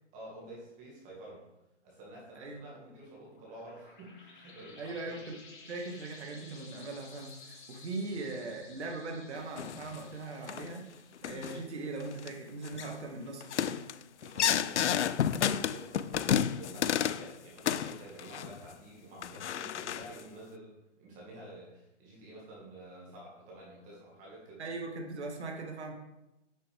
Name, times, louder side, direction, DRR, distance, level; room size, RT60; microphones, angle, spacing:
voice 1, 0.1-1.5 1.8-5.2 14.2-20.7 21.0-24.6, right 1 dB, 20° right, -4 dB, 2.1 m, -49 dB
sound 1, 3.2-12.4, left 3 dB, 45° left, 2.0 m, -55 dB
voice 2, 4.8-5.4 5.7-10.8 11.2-13.8 24.6-26.0, right 3 dB, 65° right, 1 dB, 2.0 m, -40 dB
sound 2, 9.6-10.0 10.5-10.7 11.2-11.6 12.0-12.3 12.6-12.9 13.4-17.3 17.6-18.7 19.2-20.2, left 9 dB, 70° left, 0.5 m, -31 dB
9.6 x 6.6 x 3.5 m, 0.94 s
hypercardioid pair, 140°, 36 cm